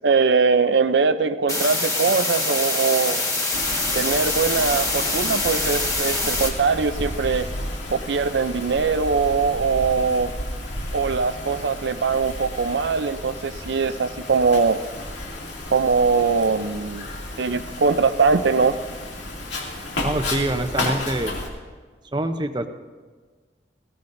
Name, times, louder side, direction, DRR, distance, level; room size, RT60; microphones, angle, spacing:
voice 1, 0.0-3.2 3.9-7.5 7.9-10.3 10.9-14.8 15.7-17.0 17.4-18.8, right 4 dB, 85° right, 11 dB, 0.5 m, -21 dB
sound 1, 1.5-6.5, left 2 dB, 20° left, 1.6 m, -24 dB
Wind, 3.5-21.5, left 1 dB, 90° left, 2.5 m, -32 dB
voice 2, 20.0-21.4 22.1-22.7, right 1 dB, 25° right, 7 dB, 0.7 m, -25 dB
19.0 x 16.5 x 2.6 m, 1.5 s
head